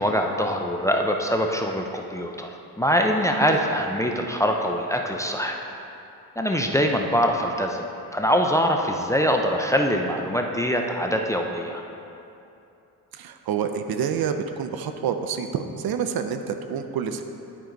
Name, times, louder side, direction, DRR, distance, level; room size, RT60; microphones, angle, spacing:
voice 1, 0.0-2.5 2.8-5.6 6.4-11.8, equal, 10° left, 2 dB, 0.4 m, -23 dB
voice 2, 13.1-17.2, right 7 dB, 70° right, 8 dB, 0.6 m, -28 dB
11.5 x 4.6 x 3.9 m, 2.7 s
cardioid pair, 105°, 38 cm